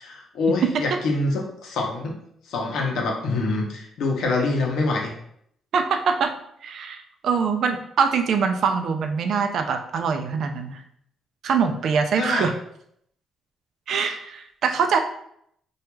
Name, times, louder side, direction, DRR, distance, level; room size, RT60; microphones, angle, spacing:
voice 1, 0.0-2.2 2.5-5.1 12.2-12.5, left 3 dB, 80° left, 0 dB, 0.6 m, -25 dB
voice 2, 5.7-6.3 6.6-10.8 11.4-12.5 13.9-15.0, right 6 dB, 65° right, 6 dB, 0.3 m, -23 dB
3.0 x 2.3 x 2.2 m, 0.70 s
cardioid pair, 90°, 0 cm